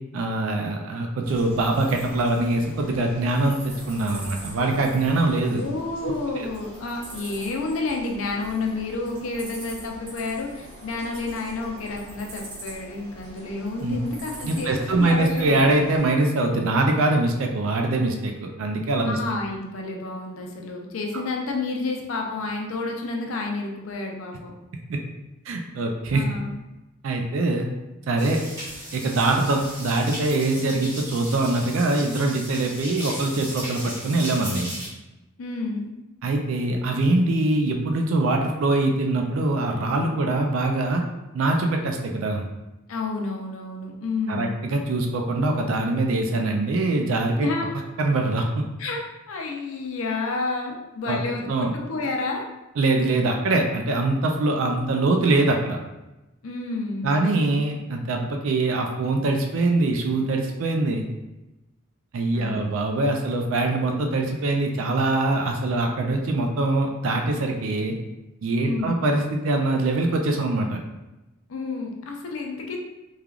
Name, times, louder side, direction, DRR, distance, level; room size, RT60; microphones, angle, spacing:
voice 1, 0.1-5.6 6.0-6.5 13.8-14.0 14.4-18.3 18.6-19.2 21.1-21.2 24.9-25.0 25.5-26.2 27.0-27.7 28.1-28.4 28.9-34.7 36.2-41.0 41.3-42.4 44.3-47.5 48.0-48.7 51.1-51.2 51.5-51.7 52.8-55.8 57.0-61.0 62.1-67.9 68.4-70.8, right 2 dB, 70° right, 3 dB, 0.4 m, -23 dB
sound 1, 1.2-16.1, right 1 dB, 85° right, 1.1 m, -42 dB
voice 2, 5.4-15.6 19.1-24.5 26.1-26.6 35.4-35.9 42.9-44.5 47.4-47.7 48.8-49.0 49.3-52.5 56.4-57.3 62.3-62.6 68.6-69.0 71.5-72.8, left 3 dB, 70° left, 1 dB, 0.5 m, -30 dB
sound 2, 28.2-34.9, equal, 15° right, 1.2 m, -36 dB
3.2 x 2.3 x 2.3 m, 1.0 s
head